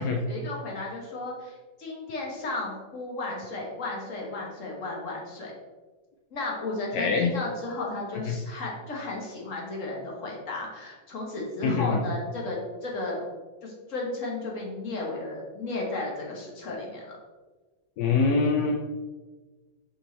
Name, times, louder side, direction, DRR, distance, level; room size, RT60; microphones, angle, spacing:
voice 1, 0.3-5.5 6.3-13.3 13.6-17.1, left 2 dB, 45° left, -2 dB, 1.5 m, -34 dB
voice 2, 6.9-7.3 8.3-8.4 11.6-12.0 18.0-18.7, left 4 dB, 70° left, 1 dB, 0.9 m, -24 dB
5.5 x 5.3 x 3.3 m, 1.3 s
omnidirectional pair, 2.1 m